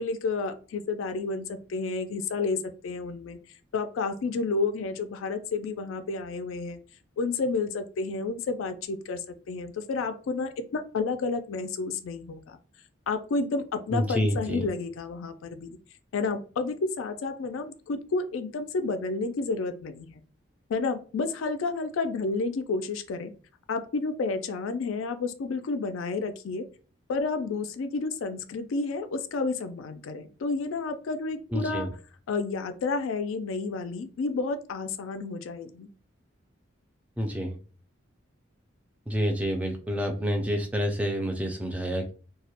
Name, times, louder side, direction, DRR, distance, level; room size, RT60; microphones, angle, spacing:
voice 1, 0.0-2.6 2.8-3.4 3.7-6.8 7.2-9.2 9.5-12.6 13.1-15.8 16.1-20.2 20.7-23.3 23.7-26.6 27.1-31.9 32.3-35.9, left 3 dB, 90° left, 9 dB, 0.3 m, -30 dB
voice 2, 13.9-14.7 31.5-31.9 37.2-37.6 39.1-42.1, equal, 5° right, 2 dB, 0.3 m, -28 dB
2.2 x 2.1 x 2.8 m, 0.38 s
head